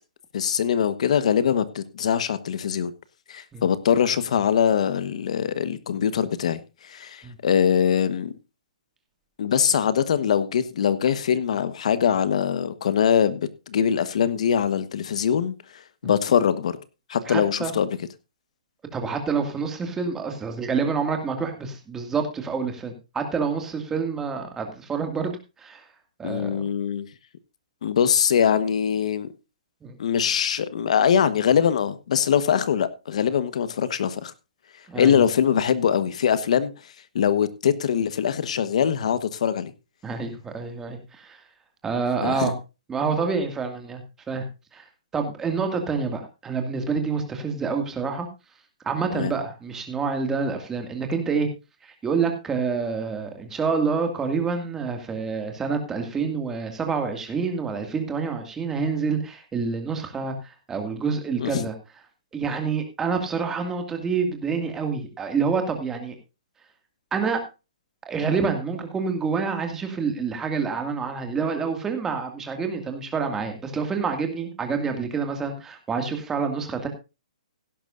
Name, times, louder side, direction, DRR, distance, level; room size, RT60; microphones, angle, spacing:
voice 1, 0.3-2.9 3.3-8.3 9.4-15.5 16.0-16.8 17.1-17.9 26.2-27.1 27.8-29.3 30.0-34.3 34.9-36.7 37.1-39.7 42.2-42.5 49.1-49.3 61.4-61.6, left 8 dB, 60° left, 1.3 m, -22 dB
voice 2, 17.3-17.7 18.9-25.8 26.2-26.6 29.8-30.0 34.9-35.3 40.0-41.4 41.8-42.5 42.9-44.0 44.3-44.5 44.7-44.8 45.1-48.3 48.8-51.5 51.8-61.7 62.3-66.1 67.1-67.4 68.0-76.9, right 5 dB, 10° right, 2.1 m, -27 dB
16.5 x 11.0 x 2.6 m
hypercardioid pair, 155°, 4 cm